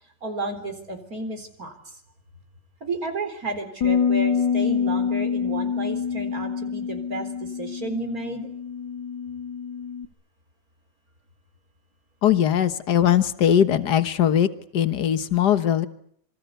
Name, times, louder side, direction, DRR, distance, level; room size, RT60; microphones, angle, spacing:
voice 1, 0.2-1.9 2.8-8.5, right 2 dB, 50° right, 7 dB, 4.5 m, -32 dB
Bass guitar, 3.8-10.1, left 6 dB, 80° left, 2.2 m, -26 dB
voice 2, 12.2-15.9, left 9 dB, 65° left, 11 dB, 1.8 m, -20 dB
27.0 x 24.5 x 8.2 m, 0.66 s
omnidirectional pair, 2.0 m